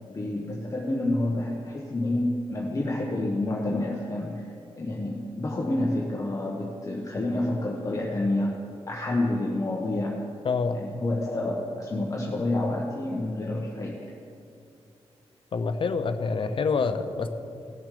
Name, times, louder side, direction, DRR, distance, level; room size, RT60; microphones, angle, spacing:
voice 1, 0.1-4.5 4.8-8.6 8.9-10.2 10.7-14.1, left 1 dB, 30° left, -3 dB, 1.2 m, -28 dB
voice 2, 10.4-10.8 15.5-17.3, left 4 dB, 55° left, 9 dB, 0.8 m, -26 dB
18.0 x 7.2 x 5.0 m, 2.4 s
wide cardioid pair, 130°, 11 cm